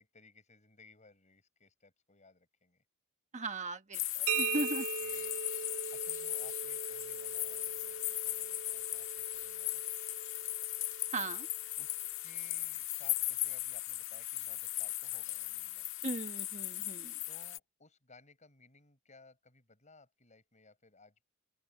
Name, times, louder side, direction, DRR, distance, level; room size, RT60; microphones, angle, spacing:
voice 1, 0.0-2.8 5.0-5.4 5.9-9.8 11.8-15.9 17.2-21.3, left 3 dB, 35° left, 6.7 m, -61 dB
voice 2, 3.3-4.8 11.1-11.5 16.0-17.1, right 2 dB, 35° right, 1.2 m, -38 dB
sound 1, 3.9-17.6, left 15 dB, 65° left, 1.6 m, -37 dB
sound 2, 4.3-11.8, right 8 dB, 75° right, 0.6 m, -41 dB
open air
head